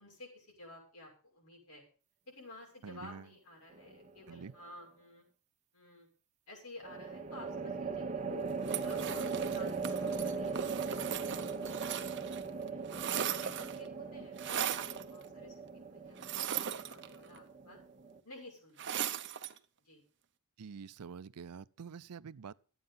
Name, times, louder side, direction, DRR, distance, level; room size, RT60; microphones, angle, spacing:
voice 1, 0.0-1.8 2.3-5.2 5.7-6.1 6.5-8.4 8.8-12.1 12.4-12.8 13.3-17.8 18.2-19.2 19.8-20.0, left 1 dB, 75° left, 6.2 m, -53 dB
voice 2, 2.8-3.3 4.3-4.5 20.6-22.5, right 6 dB, 90° right, 0.5 m, -47 dB
sound 1, 3.7-4.3 6.8-18.2, right 4 dB, 30° right, 1.1 m, -39 dB
sound 2, 8.6-12.4 12.7-13.9 14.4-15.0 16.2-17.4 18.8-19.6, right 9 dB, 55° right, 0.8 m, -38 dB
13.0 x 9.0 x 5.4 m
head